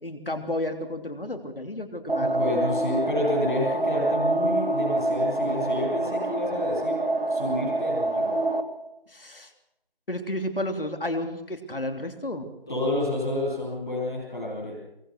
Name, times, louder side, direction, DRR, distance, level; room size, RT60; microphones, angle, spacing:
voice 1, 0.0-2.4 9.1-9.5 10.1-12.5, left 1 dB, 70° left, 6 dB, 3.1 m, -32 dB
voice 2, 2.0-7.0 7.2-8.4 12.7-14.7, left 1 dB, 5° left, -17 dB, 2.5 m, -29 dB
sound 1, 2.1-8.6, right 2 dB, 75° right, 2.5 m, -26 dB
23.0 x 19.5 x 6.5 m, 0.87 s
figure-of-eight pair, 175°, 29 cm